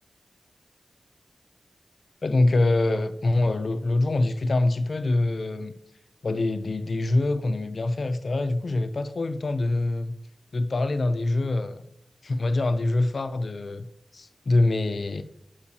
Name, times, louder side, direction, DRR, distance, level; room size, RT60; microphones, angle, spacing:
voice 1, 2.2-5.7 6.2-10.1 10.5-11.8 12.2-13.9 14.1-15.2, left 2 dB, 65° left, 0.4 m, -24 dB
8.6 x 4.6 x 2.8 m
cardioid pair, 50°, 0 cm